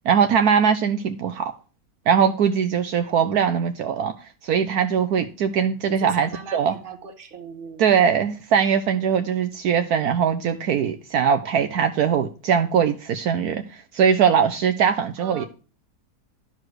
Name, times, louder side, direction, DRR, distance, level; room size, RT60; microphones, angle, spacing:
voice 1, 0.0-1.5 2.1-4.1 4.4-6.8 7.8-13.6 13.9-15.4, right 7 dB, 70° right, 8 dB, 1.2 m, -21 dB
voice 2, 6.0-7.8 15.2-15.5, right 5 dB, 35° right, 7 dB, 1.4 m, -38 dB
12.0 x 4.8 x 6.1 m, 0.36 s
omnidirectional pair, 1.7 m